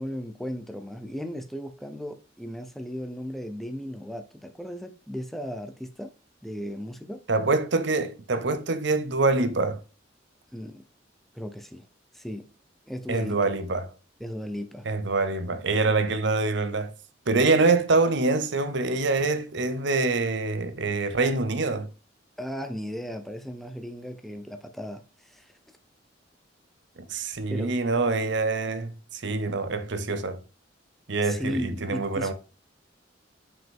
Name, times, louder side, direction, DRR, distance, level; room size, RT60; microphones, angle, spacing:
voice 1, 0.0-6.1 6.4-7.2 10.5-10.8 11.3-11.9 12.1-12.4 12.9-13.4 14.2-14.9 22.4-25.5 27.5-27.7 31.2-32.3, equal, ahead, 0.6 m, -36 dB
voice 2, 7.3-9.8 13.1-13.9 14.9-16.9 17.3-21.9 27.1-30.4 31.1-32.3, right 3 dB, 65° right, 0.8 m, -25 dB
6.1 x 5.2 x 3.6 m
head